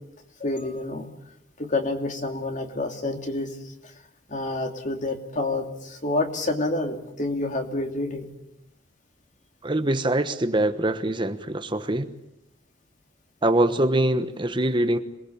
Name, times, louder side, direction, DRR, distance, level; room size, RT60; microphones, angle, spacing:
voice 1, 0.4-1.1 1.6-3.5 4.3-8.3, left 2 dB, 40° left, 4 dB, 2.8 m, -28 dB
voice 2, 9.6-12.1 13.4-15.0, right 1 dB, 25° right, 8 dB, 1.1 m, -23 dB
27.0 x 20.5 x 8.6 m, 0.86 s
head